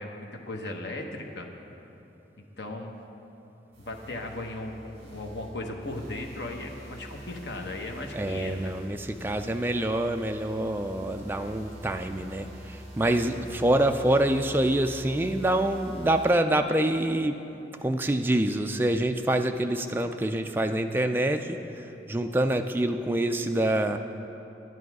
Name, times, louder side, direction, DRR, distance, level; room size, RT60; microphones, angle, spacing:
voice 1, 0.0-1.5 2.4-3.0 3.8-8.7, left 2 dB, 80° left, 2 dB, 1.0 m, -37 dB
sound 1, 3.7-16.3, right 1 dB, 35° right, 2.5 m, -45 dB
voice 2, 8.1-17.4 17.7-21.6 22.1-24.0, right 1 dB, 10° right, 6 dB, 0.3 m, -26 dB
10.5 x 9.5 x 4.8 m, 3.0 s
head